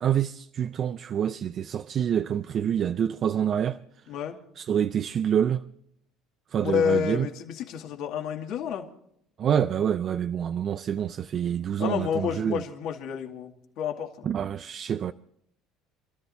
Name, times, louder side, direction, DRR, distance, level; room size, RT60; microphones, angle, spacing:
voice 1, 0.0-3.8 4.6-5.6 6.5-7.3 9.4-12.6 14.2-15.1, right 9 dB, 40° right, 0.5 m, -27 dB
voice 2, 4.1-4.4 6.6-8.9 11.8-14.3, left 8 dB, 60° left, 2.3 m, -29 dB
28.5 x 13.5 x 2.7 m
cardioid pair, 140°, 0 cm